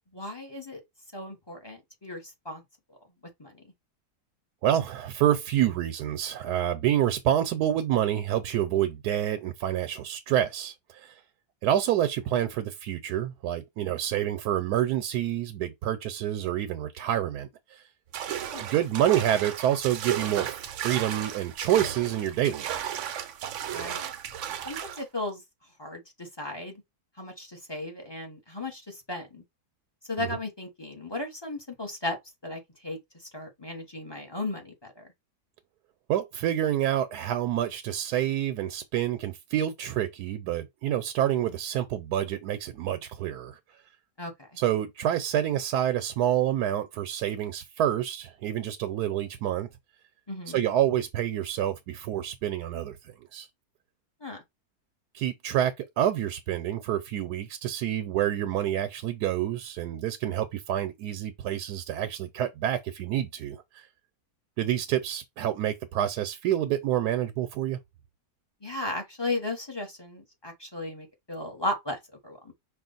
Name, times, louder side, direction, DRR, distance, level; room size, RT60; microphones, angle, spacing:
voice 1, 0.1-0.8 1.1-2.6 3.4-3.6 18.5-18.7 23.7-24.0 24.6-25.4 25.8-26.8 27.2-29.4 30.1-32.2 32.4-33.0 33.3-35.0 44.2-44.3 50.3-50.6 54.2-54.4 68.6-72.5, left 2 dB, 20° left, 1.0 m, -35 dB
voice 2, 4.6-11.1 11.6-17.8 18.6-20.5 20.8-22.8 30.2-30.3 36.1-43.6 44.6-49.7 50.5-53.5 55.1-63.8 64.6-67.8, right 11 dB, 85° right, 1.2 m, -28 dB
sound 1, 18.1-25.0, right 9 dB, 65° right, 0.8 m, -35 dB
5.5 x 2.5 x 3.9 m
omnidirectional pair, 1.7 m